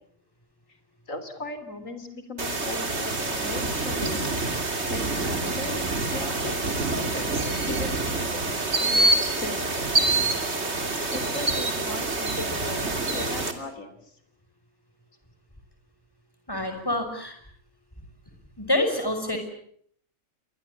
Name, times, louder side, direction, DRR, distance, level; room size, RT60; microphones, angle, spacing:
voice 1, 1.1-4.4 4.9-5.8 6.1-7.3 7.7-9.8 11.1-13.9, left 2 dB, 65° left, 10 dB, 3.8 m, -37 dB
sound 1, 2.4-13.5, right 2 dB, 50° right, 3.1 m, -26 dB
voice 2, 16.5-17.4 18.6-19.4, left 1 dB, 15° left, 5 dB, 6.0 m, -26 dB
28.5 x 23.0 x 8.5 m, 0.64 s
omnidirectional pair, 1.5 m